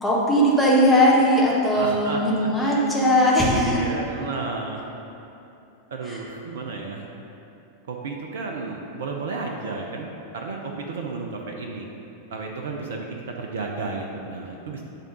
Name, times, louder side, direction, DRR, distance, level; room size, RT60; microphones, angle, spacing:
voice 1, 0.0-3.8 6.1-6.2, equal, 5° left, -6 dB, 1.5 m, -19 dB
voice 2, 1.7-2.9 3.6-4.9 5.9-7.1 7.9-10.1 10.3-11.9 12.3-14.8, right 3 dB, 60° right, 1 dB, 0.6 m, -32 dB
9.0 x 3.6 x 5.3 m, 2.8 s
figure-of-eight pair, 90°, 0 cm